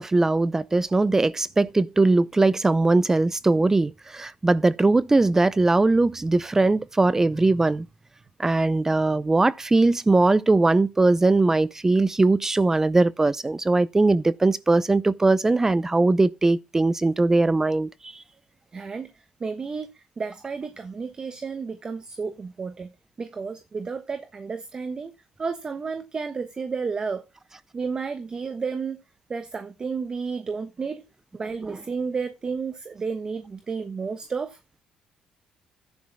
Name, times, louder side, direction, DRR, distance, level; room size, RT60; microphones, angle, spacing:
voice 1, 0.0-7.8 8.4-18.2 31.7-31.8, right 2 dB, 20° right, 0.6 m, -20 dB
voice 2, 18.7-19.1 19.4-22.9 23.2-25.1 25.4-27.3 27.7-29.0 29.3-31.0 31.3-34.6, right 5 dB, 35° right, 1.2 m, -32 dB
14.0 x 10.5 x 2.2 m
supercardioid pair, 80°, 2 cm